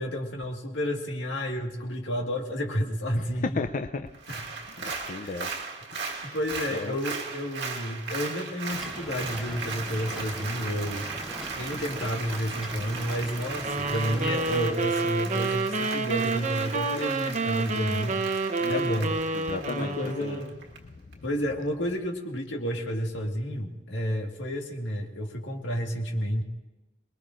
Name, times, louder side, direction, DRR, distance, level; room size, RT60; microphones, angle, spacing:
voice 1, 0.0-3.5 4.3-4.4 5.2-5.4 6.2-11.1 11.6-18.2 18.7-19.2 19.7-20.5 21.2-26.4, equal, 85° left, 1 dB, 1.9 m, -31 dB
voice 2, 3.2-4.1 4.7-5.5 5.9-6.4 6.7-7.0 18.6-20.4 20.8-21.3, left 3 dB, 45° left, 8 dB, 0.5 m, -36 dB
Applause, 4.1-20.8 21.1-21.2, right 4 dB, 65° right, 1.6 m, -37 dB
sound 1, 8.7-14.7, equal, ahead, 0.9 m, -41 dB
sound 2, 13.6-20.6, right 3 dB, 40° right, 0.9 m, -29 dB
27.5 x 20.5 x 2.5 m, 1.1 s
head